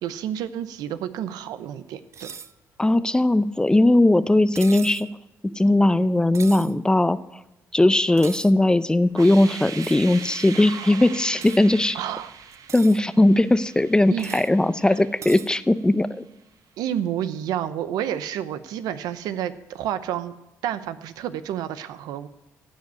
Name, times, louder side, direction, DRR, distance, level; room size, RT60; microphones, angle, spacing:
voice 1, 0.0-2.3 11.9-12.3 14.1-14.5 14.9-15.0 16.8-20.3 20.6-22.3, right 10 dB, 80° right, 13 dB, 0.7 m, -30 dB
sound 1, 2.1-2.5 4.5-5.1 6.3-6.7 8.2-8.5 9.8-10.0 11.4-11.6 12.5-13.0 14.2-14.5 15.2-15.5, right 7 dB, 45° right, 0.6 m, -38 dB
voice 2, 2.8-5.1 5.4-7.2 7.7-12.0 12.7-16.2, left 1 dB, 10° left, 15 dB, 0.6 m, -19 dB
sound 2, 9.1-15.9, right 7 dB, 60° right, 1.1 m, -40 dB
15.0 x 5.2 x 9.2 m, 0.91 s
supercardioid pair, 75°, 7 cm